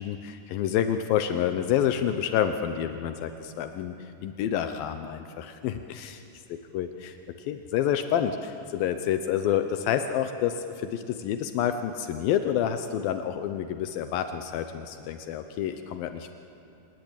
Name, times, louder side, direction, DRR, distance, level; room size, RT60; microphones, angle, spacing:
voice 1, 0.0-3.9 4.2-6.2 6.5-16.3, left 9 dB, 85° left, 8 dB, 2.0 m, -28 dB
26.5 x 19.0 x 8.9 m, 2.6 s
omnidirectional pair, 5.3 m